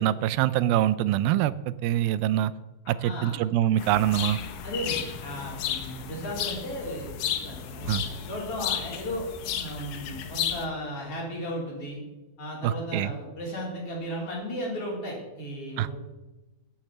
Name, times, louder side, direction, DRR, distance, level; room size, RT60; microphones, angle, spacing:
voice 1, 0.0-2.5 2.9-4.4 7.9-8.0 12.6-13.1 15.8-15.9, right 12 dB, 90° right, 17 dB, 2.4 m, -24 dB
voice 2, 3.0-3.4 4.6-9.2 9.6-12.0 12.4-15.9, equal, 40° left, -3 dB, 4.4 m, -35 dB
sound 1, 3.8-10.7, left 9 dB, 70° left, 2.3 m, -33 dB
10.0 x 9.6 x 7.5 m, 1.1 s
omnidirectional pair, 4.2 m